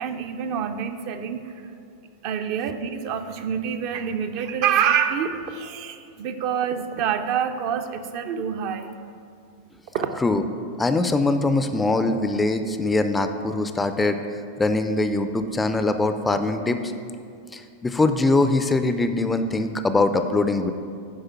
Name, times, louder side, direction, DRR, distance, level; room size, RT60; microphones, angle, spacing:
voice 1, 0.0-1.5 2.2-8.9 9.9-10.2, right 8 dB, 45° right, 7 dB, 0.5 m, -26 dB
voice 2, 10.8-14.2 14.6-16.9 17.5-20.7, left 2 dB, 10° left, 9 dB, 0.4 m, -22 dB
10.0 x 5.0 x 6.0 m, 2.4 s
figure-of-eight pair, 90°, 0 cm